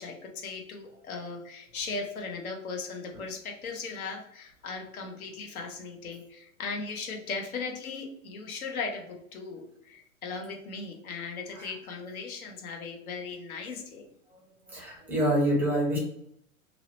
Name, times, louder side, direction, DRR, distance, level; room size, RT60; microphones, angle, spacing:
voice 1, 0.0-14.1, left 4 dB, 80° left, 2 dB, 0.8 m, -38 dB
voice 2, 14.7-16.0, right 1 dB, 5° right, -4 dB, 0.4 m, -26 dB
2.7 x 2.0 x 2.8 m, 0.72 s
hypercardioid pair, 125°, 42 cm